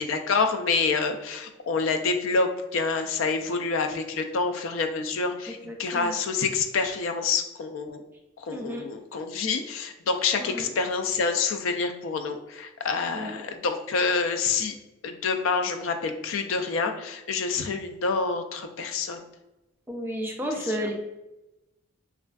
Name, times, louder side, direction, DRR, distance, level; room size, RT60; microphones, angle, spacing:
voice 1, 0.0-8.0 8.4-14.7 15.0-19.2 20.8-20.9, left 4 dB, 75° left, 6 dB, 0.3 m, -27 dB
voice 2, 5.5-6.1 8.5-8.9 10.4-10.7 13.1-13.4 19.9-20.9, equal, 10° right, 1 dB, 0.3 m, -32 dB
3.3 x 2.4 x 2.2 m, 0.99 s
head